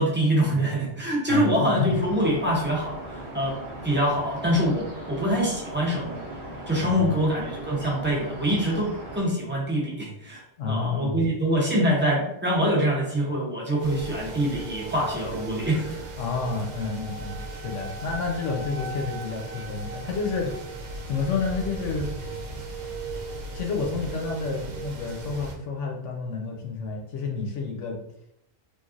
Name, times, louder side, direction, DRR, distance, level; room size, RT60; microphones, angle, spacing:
voice 1, 0.0-3.6 3.8-6.3 6.7-10.4 10.7-15.8, equal, 20° right, -4 dB, 0.3 m, -25 dB
voice 2, 1.3-1.9 6.8-7.1 10.6-11.2 16.2-20.6 21.1-22.1 23.5-28.0, left 4 dB, 70° left, 0 dB, 0.9 m, -30 dB
sound 1, 1.9-9.2, right 1 dB, 45° right, 0.9 m, -38 dB
sound 2, 13.8-25.5, right 2 dB, 75° right, 0.9 m, -36 dB
3.1 x 2.4 x 2.4 m, 0.76 s
omnidirectional pair, 1.4 m